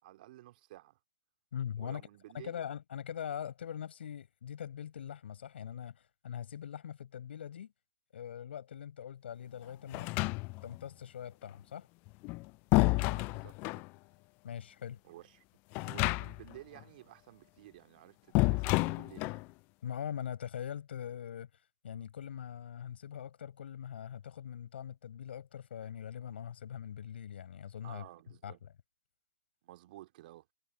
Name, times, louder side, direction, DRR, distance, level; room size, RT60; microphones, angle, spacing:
voice 1, 0.0-1.0 1.8-2.6 12.8-13.8 15.0-15.4 15.8-19.4 27.8-28.6 29.6-30.5, right 16 dB, 45° right, 2.8 m, -53 dB
voice 2, 1.5-2.0 2.3-7.7 8.1-10.1 10.6-11.9 14.4-15.0 19.8-21.5 21.8-28.0 28.4-28.5, left 9 dB, 60° left, 6.8 m, -42 dB
sound 1, 9.9-10.8 12.1-13.9 15.7-16.6 16.8-16.9 18.3-19.5, left 26 dB, 30° left, 0.4 m, -30 dB
hypercardioid pair, 125°, 6 cm